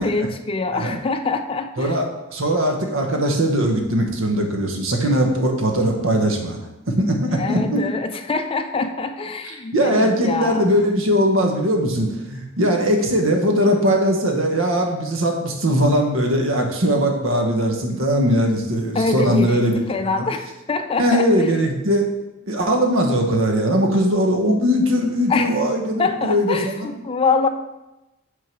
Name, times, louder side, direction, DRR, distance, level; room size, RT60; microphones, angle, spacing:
voice 1, 0.0-2.0 7.3-10.7 18.9-21.3 25.3-25.6 26.0-27.5, left 4 dB, 25° left, 8 dB, 0.4 m, -24 dB
voice 2, 1.8-6.6 6.9-7.8 9.5-19.8 20.2-20.3 21.0-22.1 22.5-26.9, equal, 80° right, 2 dB, 1.1 m, -20 dB
6.1 x 3.8 x 6.0 m, 0.99 s
head